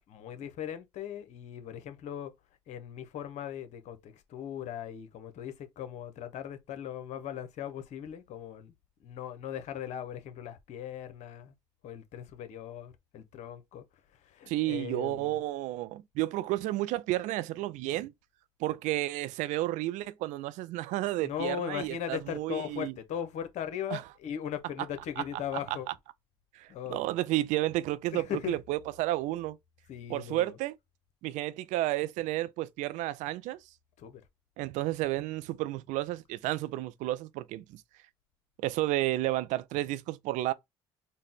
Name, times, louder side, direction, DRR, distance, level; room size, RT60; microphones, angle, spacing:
voice 1, 0.1-2.3 2.7-8.7 9.0-11.5 11.8-13.8 14.1-15.3 21.2-25.9 26.7-27.0 28.1-28.5 29.9-30.6 34.0-34.2, left 9 dB, 65° left, 0.8 m, -38 dB
voice 2, 14.5-18.1 18.6-22.9 23.9-24.0 25.2-25.6 26.5-29.6 30.1-30.8 31.2-33.6 34.6-37.8 38.6-40.5, right 16 dB, 70° right, 0.4 m, -32 dB
4.0 x 2.1 x 3.5 m
hypercardioid pair, 60°, 13 cm